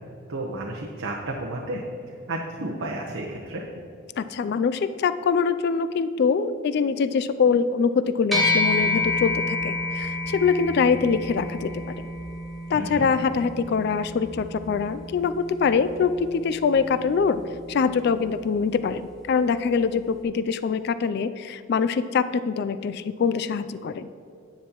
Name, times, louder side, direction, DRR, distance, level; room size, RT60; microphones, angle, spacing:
voice 1, 0.3-1.8 2.3-3.7 12.7-13.1, right 2 dB, 85° right, -1 dB, 0.9 m, -32 dB
voice 2, 4.2-11.7 12.7-15.3 15.6-17.4 17.7-24.1, left 5 dB, 55° left, 13 dB, 0.3 m, -24 dB
sound 1, 8.3-17.9, left 2 dB, ahead, 1.0 m, -29 dB
10.5 x 9.4 x 3.0 m, 2.6 s
head